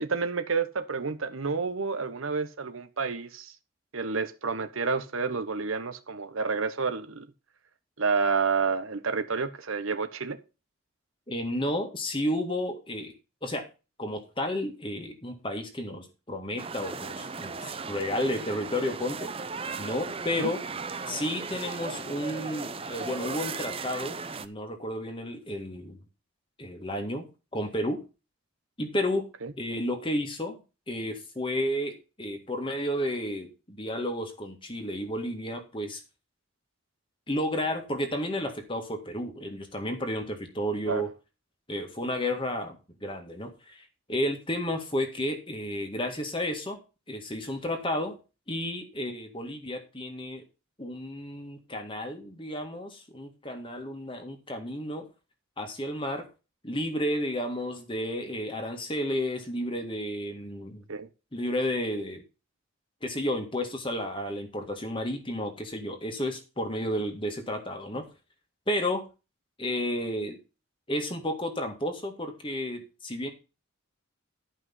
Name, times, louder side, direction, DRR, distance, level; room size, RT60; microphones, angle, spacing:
voice 1, 0.0-3.5 3.9-7.2 8.0-10.4 20.4-20.5 29.4-29.5 40.9-41.1 60.9-61.1, right 5 dB, 75° right, 1.0 m, -29 dB
voice 2, 11.3-13.1 13.4-13.7 14.0-19.3 19.8-20.6 21.1-26.0 26.6-27.3 27.5-28.0 28.8-29.3 29.6-30.6 30.9-36.0 37.3-41.1 41.7-46.8 47.1-48.1 48.5-50.4 50.8-55.1 55.6-56.3 56.6-60.8 61.3-62.2 63.0-68.1 68.7-69.1 69.6-70.4 70.9-73.3, left 1 dB, 25° left, 1.9 m, -32 dB
sound 1, 16.6-24.5, right 4 dB, 25° right, 0.6 m, -36 dB
12.0 x 5.5 x 5.6 m
head